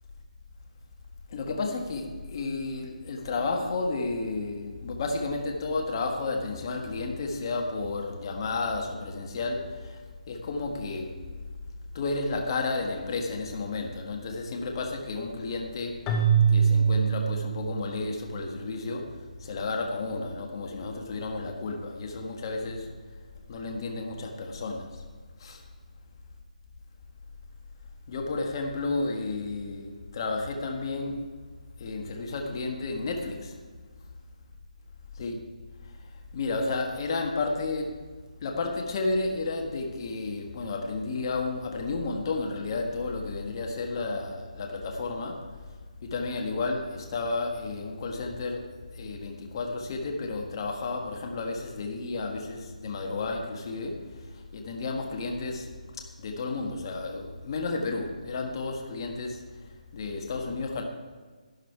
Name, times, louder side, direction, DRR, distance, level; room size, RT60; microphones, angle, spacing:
voice 1, 1.3-10.0 10.3-11.2 11.9-16.1 16.5-19.1 19.4-22.9 23.5-24.9 25.4-25.6 28.1-31.2 31.8-33.5 35.2-35.4 36.3-38.1 38.4-45.4 46.0-54.1 54.5-55.7 56.2-59.4 59.9-60.8, left 3 dB, 35° left, 1.5 m, -32 dB
Keyboard (musical), 16.1-18.3, right 6 dB, 15° left, 1.0 m, -24 dB
12.0 x 10.5 x 4.7 m
hypercardioid pair, 165°, 4 cm